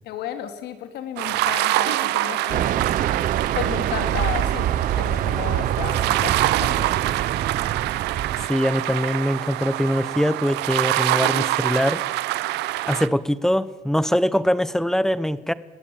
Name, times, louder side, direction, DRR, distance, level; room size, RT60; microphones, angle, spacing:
voice 1, 0.0-2.7 3.5-4.7 5.0-6.9, left 10 dB, 75° left, 8 dB, 2.7 m, -33 dB
sound 1, 1.2-13.1, right 17 dB, 90° right, 0.9 m, -25 dB
Fixed-wing aircraft airplane, 2.5-8.5, right 11 dB, 55° right, 0.8 m, -25 dB
voice 2, 8.4-12.0 12.9-15.5, equal, 5° left, 17 dB, 0.9 m, -22 dB
21.0 x 16.0 x 8.7 m, 1.3 s
cardioid pair, 110°, 17 cm